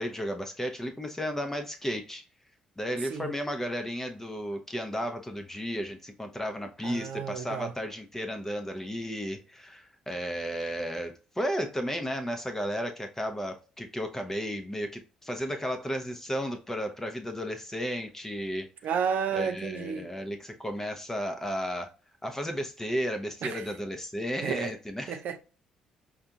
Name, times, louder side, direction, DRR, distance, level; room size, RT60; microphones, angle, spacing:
voice 1, 0.0-2.2 2.8-18.7 19.3-21.9 22.2-25.2, equal, 10° left, 0.6 m, -33 dB
voice 2, 6.8-7.7 18.8-20.1 23.4-23.6 24.4-24.7 25.1-25.4, right 7 dB, 55° right, 0.4 m, -31 dB
5.3 x 2.6 x 2.4 m
figure-of-eight pair, 45°, 3 cm